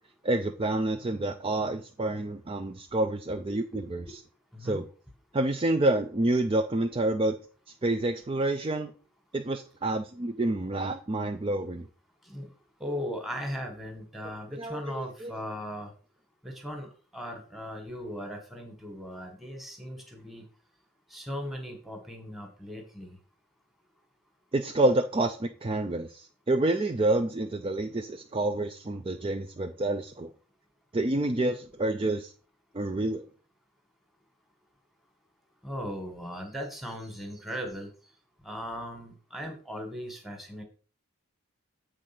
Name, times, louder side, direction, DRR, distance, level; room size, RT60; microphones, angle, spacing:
voice 1, 0.2-4.0 4.6-4.9 5.3-7.4 7.8-8.9 9.3-11.9 14.5-15.3 24.5-30.3 30.9-32.3 32.7-33.2, right 2 dB, 25° right, 6 dB, 0.4 m, -28 dB
voice 2, 3.3-4.1 4.5-4.8 12.2-12.5 12.8-15.9 16.4-16.9 17.1-20.4 21.1-23.2 35.6-37.9 38.4-40.6, equal, ahead, 3 dB, 1.5 m, -38 dB
8.1 x 3.7 x 5.9 m, 0.39 s
head